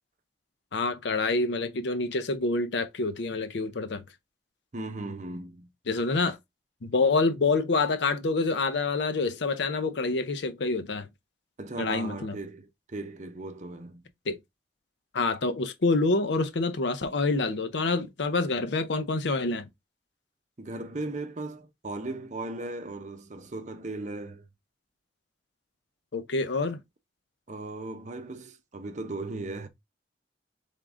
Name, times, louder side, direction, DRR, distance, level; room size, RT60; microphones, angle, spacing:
voice 1, 0.7-4.0 5.9-6.4 6.8-11.1 11.8-12.4 14.3-14.4 15.1-19.7 26.1-26.8, left 3 dB, 80° left, 0.6 m, -27 dB
voice 2, 4.7-5.7 11.6-14.0 20.6-24.5 27.5-29.7, right 2 dB, 40° right, 0.7 m, -37 dB
3.7 x 3.6 x 3.6 m
head